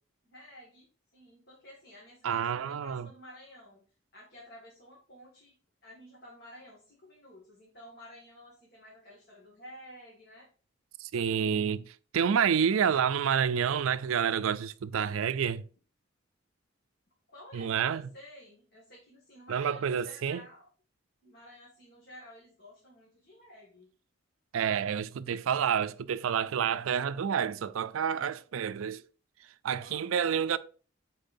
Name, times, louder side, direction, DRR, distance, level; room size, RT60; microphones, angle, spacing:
voice 1, 0.2-0.9 1.1-3.8 4.1-5.5 5.8-10.5 11.3-11.8 12.3-12.8 17.3-20.7 21.2-23.9 29.8-30.4, left 1 dB, 50° left, 1.9 m, -52 dB
voice 2, 2.2-3.1 11.0-15.6 17.5-18.0 19.5-20.4 24.5-29.0 29.6-30.6, right 7 dB, 85° right, 0.4 m, -29 dB
9.1 x 4.3 x 2.6 m
head